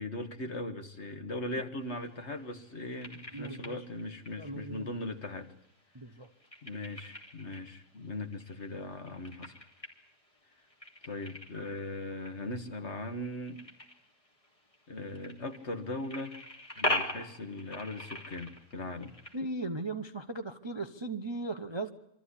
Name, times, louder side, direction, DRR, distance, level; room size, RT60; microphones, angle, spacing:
voice 1, 0.0-5.5 6.6-9.5 11.0-13.6 14.9-16.4 16.8-19.1, left 2 dB, 45° left, 7 dB, 1.8 m, -39 dB
sound 1, 1.8-19.4, left 1 dB, 20° left, 2.9 m, -42 dB
voice 2, 3.3-3.8 4.4-4.9 5.9-6.3 19.3-21.9, right 2 dB, 20° right, 7 dB, 0.7 m, -37 dB
25.0 x 14.0 x 9.9 m, 0.80 s
omnidirectional pair, 1.7 m